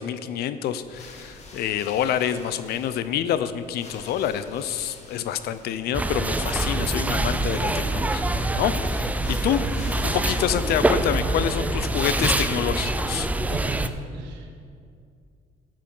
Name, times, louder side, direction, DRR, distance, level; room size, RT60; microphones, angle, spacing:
voice 1, 0.0-9.6 10.0-13.3, left 10 dB, 70° left, 13 dB, 0.6 m, -27 dB
sound 1, 0.8-11.4, left 2 dB, 40° left, 1.8 m, -47 dB
sound 2, 5.9-13.9, right 2 dB, 10° right, 0.4 m, -25 dB
voice 2, 13.5-14.5, right 3 dB, 85° right, 2 dB, 1.6 m, -35 dB
10.5 x 7.6 x 5.5 m, 2.3 s
cardioid pair, 110°, 17 cm